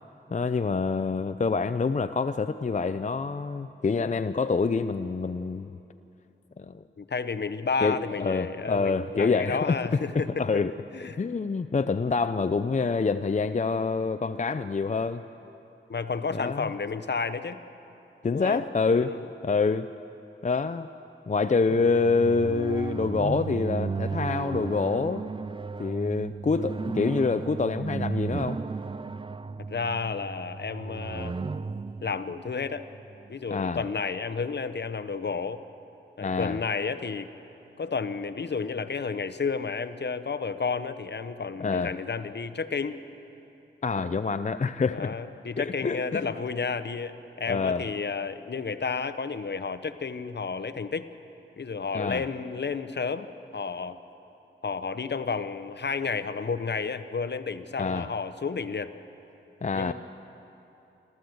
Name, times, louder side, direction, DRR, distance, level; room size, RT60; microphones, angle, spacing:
voice 1, 0.3-5.8 6.6-6.8 7.8-9.8 10.1-10.7 11.2-15.2 16.3-16.7 18.2-19.1 19.4-19.9 20.4-20.9 21.3-25.3 25.8-28.6 33.5-33.8 36.2-36.6 41.6-41.9 43.8-45.1 45.6-46.3 47.5-47.8 51.9-52.2 57.8-58.1 59.6-59.9, left 4 dB, 40° left, 11 dB, 0.5 m, -26 dB
voice 2, 7.0-10.5 10.9-11.2 15.9-17.6 18.3-18.6 19.1-19.3 29.7-31.3 32.0-32.9 33.3-35.6 36.2-37.3 37.8-43.0 43.9-44.1 44.9-51.1 51.6-53.3 53.5-54.0 54.6-58.9 59.7-59.9, left 5 dB, 60° left, 11 dB, 0.9 m, -31 dB
sound 1, 21.7-33.3, right 4 dB, 25° right, 0.4 m, -34 dB
28.0 x 13.5 x 7.8 m, 2.9 s
wide cardioid pair, 65°, 20 cm